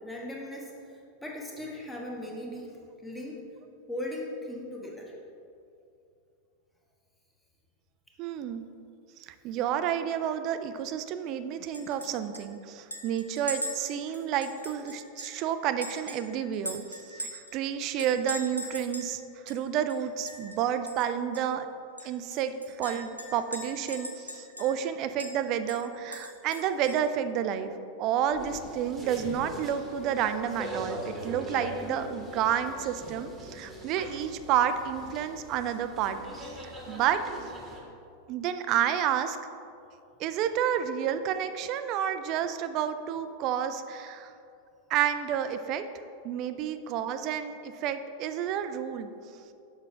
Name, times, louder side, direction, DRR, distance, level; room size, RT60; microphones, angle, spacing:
voice 1, 0.0-3.4 3.9-5.1 22.2-22.3, left 1 dB, 5° left, -3 dB, 1.2 m, -38 dB
voice 2, 8.2-8.7 9.4-19.2 19.5-21.7 22.0-27.7 28.0-36.2 36.6-37.2 38.3-39.4 40.2-44.3 44.9-45.8 46.2-49.1, right 9 dB, 40° right, 10 dB, 0.3 m, -30 dB
Chink clink, 11.7-12.1 12.3-12.4 12.9-15.4 15.8-17.5 18.0-19.1 19.5-19.6 19.9-20.6 20.9-21.0 21.3-21.4 22.0-24.9 25.2-25.3 25.7-27.1, equal, 90° right, 0.7 m, -40 dB
sound 1, 28.3-37.8, right 1 dB, 15° right, 1.2 m, -41 dB
6.9 x 5.6 x 3.4 m, 2.6 s
figure-of-eight pair, 90°, 0 cm